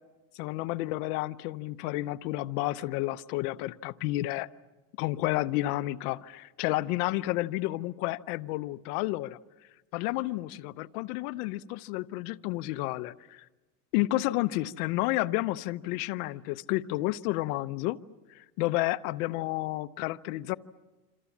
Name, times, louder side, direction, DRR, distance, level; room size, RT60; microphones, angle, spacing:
voice 1, 0.3-4.5 5.0-9.4 9.9-13.4 13.9-18.0 18.3-20.6, left 18 dB, 85° left, 16 dB, 0.8 m, -31 dB
27.5 x 26.5 x 7.2 m, 1.2 s
supercardioid pair, 125°, 44 cm